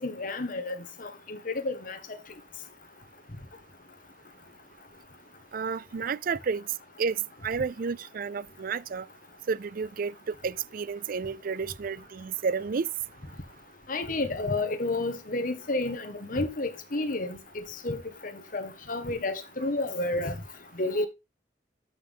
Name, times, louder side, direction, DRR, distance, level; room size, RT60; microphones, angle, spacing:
voice 1, 0.0-2.0 13.9-18.0 18.5-20.3 20.8-21.1, left 2 dB, 50° left, 1.4 m, -31 dB
voice 2, 5.5-6.6 7.0-9.1 9.5-12.9, right 5 dB, 50° right, 0.4 m, -31 dB
12.5 x 5.8 x 3.5 m
head